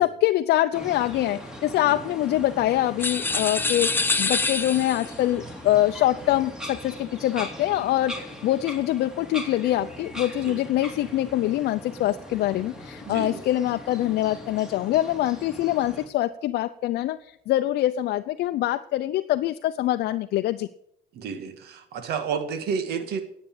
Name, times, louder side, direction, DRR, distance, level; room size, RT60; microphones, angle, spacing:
voice 1, 0.0-20.7, left 14 dB, 70° left, 7 dB, 0.6 m, -24 dB
sound 1, 0.7-16.1, left 1 dB, 5° right, 2.7 m, -40 dB
sound 2, 3.0-5.2, left 3 dB, 10° left, 0.9 m, -25 dB
voice 2, 13.1-13.4 21.1-23.2, right 6 dB, 70° right, 9 dB, 1.8 m, -31 dB
10.5 x 8.5 x 8.5 m, 0.72 s
cardioid pair, 110°, 17 cm